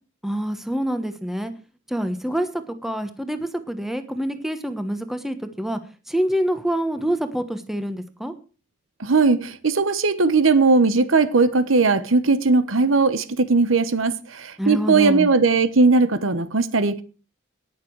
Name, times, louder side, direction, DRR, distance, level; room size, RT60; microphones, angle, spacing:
voice 1, 0.2-1.5 1.9-5.8 6.1-8.3 14.6-15.3, equal, ahead, 1.1 m, -26 dB
voice 2, 9.0-17.0, right 3 dB, 85° right, 1.1 m, -18 dB
18.5 x 6.8 x 4.7 m
head